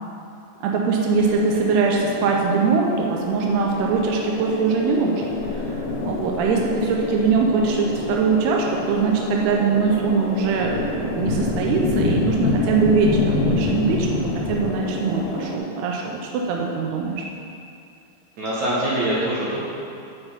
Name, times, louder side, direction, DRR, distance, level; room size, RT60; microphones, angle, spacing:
voice 1, 0.6-5.2 5.5-17.2, right 5 dB, 80° right, -1 dB, 2.4 m, -22 dB
sound 1, 1.1-15.6, left 2 dB, 85° left, 3.4 m, -27 dB
voice 2, 18.4-19.6, right 1 dB, 65° right, -7 dB, 1.9 m, -23 dB
8.5 x 6.9 x 5.6 m, 2.6 s
omnidirectional pair, 5.3 m